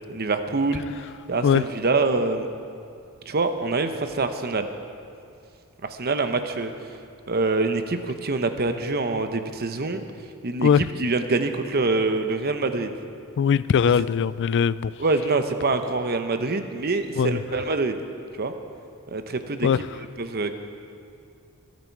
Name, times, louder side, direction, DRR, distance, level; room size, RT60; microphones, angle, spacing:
voice 1, 0.1-0.8 1.3-2.5 3.3-4.7 5.8-6.7 7.3-10.0 10.4-12.9 15.0-18.0 18.4-18.5 19.1-19.7 20.2-20.5, right 3 dB, 45° right, 8 dB, 0.9 m, -25 dB
voice 2, 13.4-14.9 17.2-17.4 19.6-19.8, left 7 dB, 55° left, 18 dB, 0.3 m, -20 dB
23.5 x 9.6 x 4.7 m, 2.5 s
head